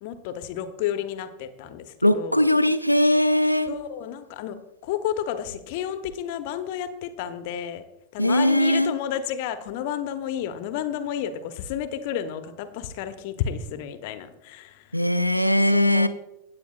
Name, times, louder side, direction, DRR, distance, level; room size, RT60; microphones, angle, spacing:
voice 1, 0.0-2.4 3.7-7.8 8.1-15.0 15.7-16.1, left 9 dB, 50° left, 10 dB, 0.9 m, -31 dB
voice 2, 2.0-3.7 8.2-9.0 14.9-16.1, left 1 dB, 90° left, 11 dB, 0.6 m, -20 dB
16.5 x 8.5 x 2.4 m, 0.93 s
figure-of-eight pair, 90°, 0 cm